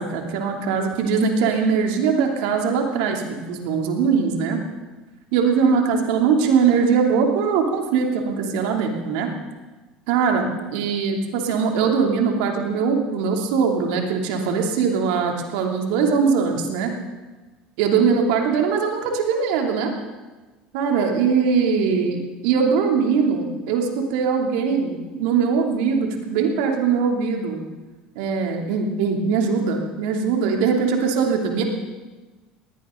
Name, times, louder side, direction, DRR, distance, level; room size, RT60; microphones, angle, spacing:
voice 1, 0.0-4.6 5.3-9.3 10.1-16.9 17.8-19.9 20.7-22.2 22.4-27.6 28.1-31.6, right 5 dB, 75° right, 2 dB, 2.9 m, -21 dB
20.0 x 16.5 x 3.9 m, 1.2 s
hypercardioid pair, 80°, 4 cm